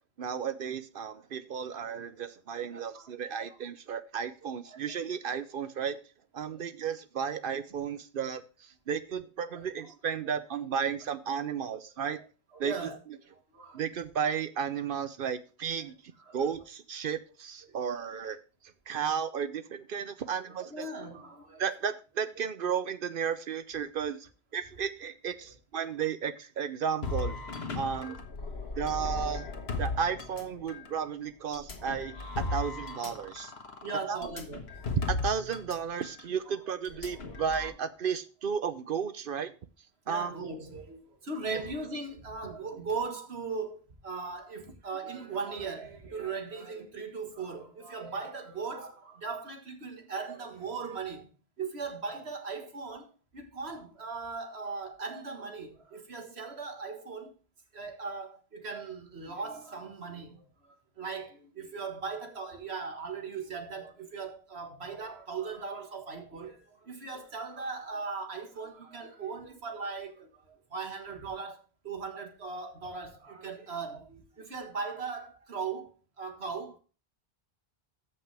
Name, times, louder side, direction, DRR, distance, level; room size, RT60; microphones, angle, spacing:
voice 1, 0.2-6.0 6.3-12.2 12.6-12.7 13.7-16.0 16.3-18.4 18.9-20.9 21.6-27.4 27.8-28.2 28.8-29.5 29.8-33.5 34.1-34.2 35.0-39.5 40.1-40.4, right 7 dB, 60° right, 0.8 m, -33 dB
voice 2, 2.7-3.6 4.4-4.8 6.4-6.7 9.5-9.7 10.2-10.3 11.6-11.7 12.2-12.3 12.5-13.0 13.3-13.9 16.3-16.4 17.7-17.8 20.5-21.7 28.0-28.1 28.4-29.1 33.7-34.6 36.5-36.6 37.2-37.5 40.1-51.3 51.6-57.4 57.7-76.8, right 4 dB, 80° right, 1.8 m, -39 dB
sound 1, 27.0-30.9 31.5-35.8 36.0-36.2 36.8-37.7, left 3 dB, 75° left, 1.5 m, -36 dB
14.0 x 5.9 x 3.3 m
omnidirectional pair, 1.1 m